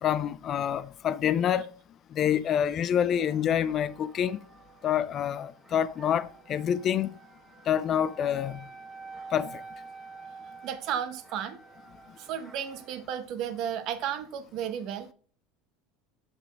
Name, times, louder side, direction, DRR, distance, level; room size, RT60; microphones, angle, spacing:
voice 1, 0.0-1.7 2.1-4.4 4.8-7.1 7.7-8.6 9.3-9.6, left 9 dB, 40° left, 0.4 m, -27 dB
sound 1, 3.2-13.0, right 4 dB, 10° right, 1.2 m, -49 dB
voice 2, 10.6-11.6 12.2-15.1, right 9 dB, 55° right, 0.8 m, -33 dB
5.9 x 5.3 x 3.3 m
supercardioid pair, 115°, 0 cm